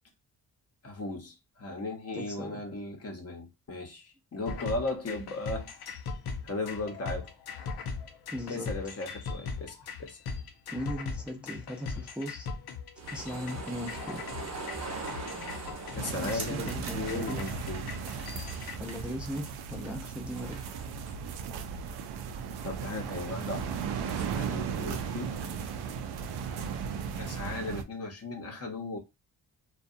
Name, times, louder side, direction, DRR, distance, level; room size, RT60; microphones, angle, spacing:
voice 1, 0.8-5.7 6.4-7.3 8.5-10.2 15.9-18.0 22.6-23.7 24.0-25.4 25.9-26.0 27.1-29.0, left 2 dB, 40° left, 0.9 m, -37 dB
voice 2, 2.2-2.6 8.3-8.7 10.7-12.5 13.1-14.2 16.2-17.4 18.8-20.6, equal, 5° right, 0.7 m, -38 dB
sound 1, 4.5-18.8, left 5 dB, 80° left, 0.7 m, -40 dB
sound 2, 13.0-21.1, right 3 dB, 45° right, 0.9 m, -42 dB
sound 3, 16.0-27.8, right 7 dB, 85° right, 0.5 m, -36 dB
2.6 x 2.3 x 2.6 m
cardioid pair, 95°, 38 cm